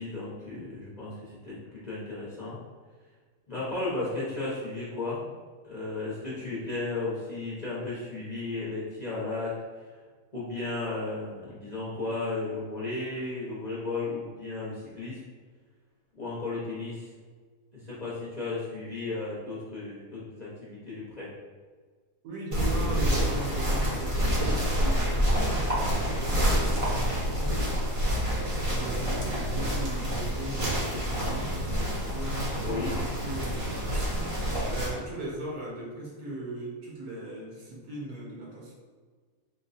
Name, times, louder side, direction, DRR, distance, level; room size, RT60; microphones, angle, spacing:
voice 1, 0.0-2.6 3.5-5.2 5.6-9.8 10.3-15.2 16.1-17.1 17.7-21.3 32.6-33.0, left 3 dB, 35° left, -8 dB, 0.8 m, -34 dB
voice 2, 22.2-27.8 28.1-31.6 32.1-38.7, right 1 dB, 75° right, -4 dB, 1.5 m, -39 dB
sound 1, 22.5-34.9, equal, 25° right, 0.8 m, -27 dB
4.0 x 2.2 x 4.1 m, 1.5 s
omnidirectional pair, 1.6 m